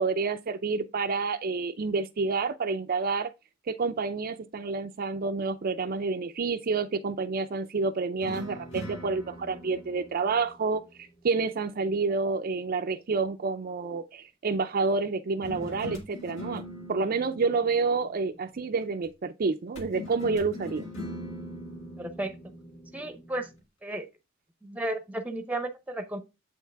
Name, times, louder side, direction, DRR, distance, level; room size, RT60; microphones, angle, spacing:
voice 1, 0.0-3.3 3.7-10.8 11.2-16.6 16.9-20.8, right 4 dB, 45° right, 0.4 m, -29 dB
sound 1, 8.2-11.6 15.4-18.8 19.8-23.6, left 1 dB, 65° left, 2.1 m, -42 dB
voice 2, 22.0-22.3 22.9-23.5 23.8-24.1 24.6-26.2, right 1 dB, 5° right, 0.8 m, -33 dB
7.8 x 4.6 x 3.4 m
head